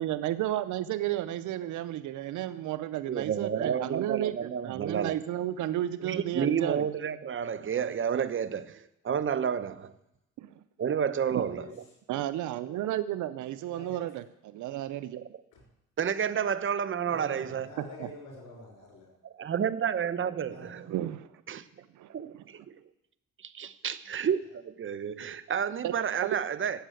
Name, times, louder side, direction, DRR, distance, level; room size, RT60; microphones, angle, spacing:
voice 1, 0.0-6.9 10.4-10.5 11.3-11.4 12.1-15.3 18.0-18.1 20.9-21.3 22.0-22.1 25.8-25.9, right 13 dB, 75° right, 0.6 m, -32 dB
voice 2, 3.1-5.2 6.0-9.9 10.8-11.7 16.0-17.7 19.2-20.9 21.5-21.6 22.1-22.7 23.4-26.8, right 8 dB, 40° right, 0.8 m, -30 dB
voice 3, 11.3-11.7 13.7-14.1 15.5-15.6 17.0-19.1 20.5-20.8, left 3 dB, 80° left, 5.7 m, -47 dB
11.5 x 7.6 x 9.1 m
cardioid pair, 90°, 30 cm